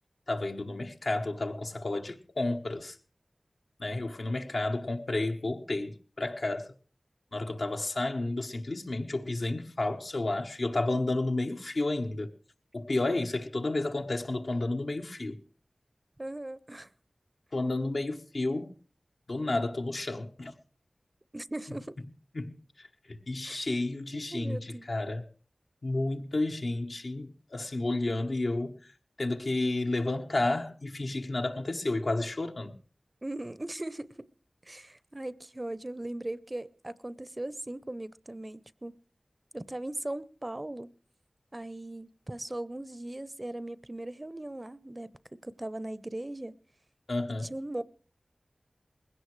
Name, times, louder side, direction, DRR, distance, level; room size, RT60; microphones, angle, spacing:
voice 1, 0.3-3.0 3.8-6.7 7.3-12.3 12.7-15.4 17.5-18.7 19.3-20.5 22.3-24.6 24.9-25.3 25.8-28.8 29.2-32.8 47.1-47.5, left 2 dB, 75° left, 1.1 m, -31 dB
voice 2, 16.2-16.9 21.3-22.0 23.4-23.6 24.1-24.9 33.2-34.3 34.6-39.0 39.5-40.9 41.5-46.6 47.4-47.8, right 1 dB, 30° right, 0.6 m, -39 dB
20.0 x 16.5 x 3.2 m
wide cardioid pair, 45°, 0 cm